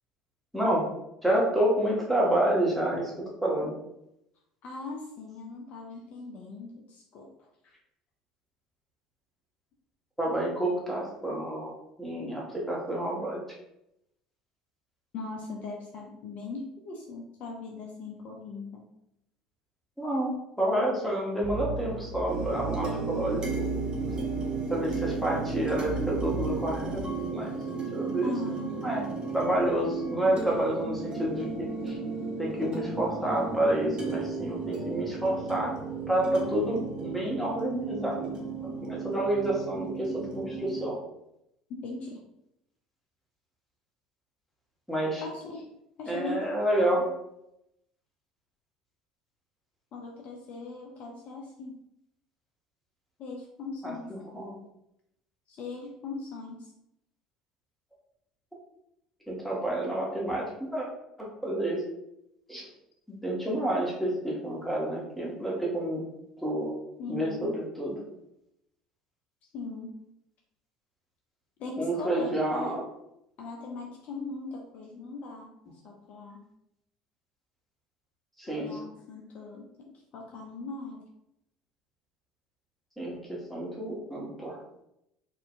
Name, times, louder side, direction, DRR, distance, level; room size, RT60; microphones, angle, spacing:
voice 1, 1.2-3.1 3.4-3.7 10.2-11.7 12.0-13.4 20.0-20.3 20.6-23.7 24.2-24.3 24.7-27.0 27.3-27.5 27.9-28.3 28.8-29.0 29.3-32.0 32.4-35.7 36.1-38.4 38.6-41.0 44.9-45.2 46.1-47.0 53.8-54.5 59.3-60.9 61.2-61.8 62.5-62.6 63.2-66.0 66.4-66.7 67.1-67.9 71.8-72.8 78.4-78.7 83.0-84.6, right 1 dB, 5° left, -4 dB, 1.2 m, -29 dB
voice 2, 4.6-7.8 15.1-18.9 28.2-28.9 41.8-42.2 45.2-45.7 46.0-46.5 46.9-47.1 49.9-51.8 53.2-54.3 55.5-56.7 67.0-67.6 69.5-70.0 71.6-72.8 73.4-75.5 75.8-76.5 78.5-79.7 80.1-81.1, left 3 dB, 45° left, 0 dB, 0.5 m, -39 dB
sound 1, 21.4-27.0, right 3 dB, 45° right, 0.5 m, -36 dB
sound 2, 22.3-40.9, right 4 dB, 25° right, 0.9 m, -35 dB
4.2 x 2.6 x 2.5 m, 0.83 s
figure-of-eight pair, 60°, 3 cm